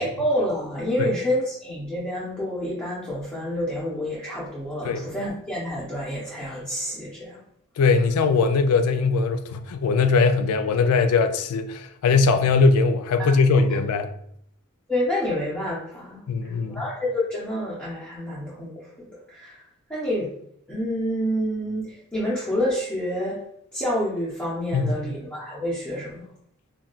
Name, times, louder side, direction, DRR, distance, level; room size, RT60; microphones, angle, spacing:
voice 1, 0.0-7.4 13.2-13.3 14.9-19.6 19.9-20.3 20.7-23.4 23.7-26.3, equal, 5° left, 0.6 m, -28 dB
voice 2, 7.8-14.1 16.3-16.8 24.7-24.9, left 4 dB, 85° left, 0.3 m, -20 dB
2.3 x 2.2 x 3.7 m
head